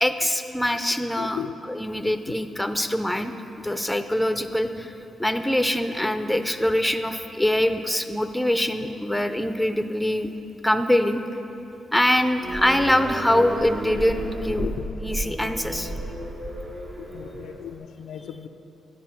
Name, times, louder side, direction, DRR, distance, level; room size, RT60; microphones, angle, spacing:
voice 1, 0.0-1.4 1.7-4.9 5.2-10.3 10.6-11.2 11.9-14.7 15.0-15.9, left 1 dB, 5° left, 9 dB, 0.5 m, -24 dB
voice 2, 1.2-1.6 1.9-2.1 14.6-14.9 15.3-15.4 15.7-16.4 17.0-18.5, left 8 dB, 80° left, 7 dB, 0.3 m, -37 dB
sound 1, 12.4-17.8, right 1 dB, 50° right, 1.2 m, -32 dB
10.5 x 4.3 x 5.9 m, 2.9 s
supercardioid pair, 55°, 0 cm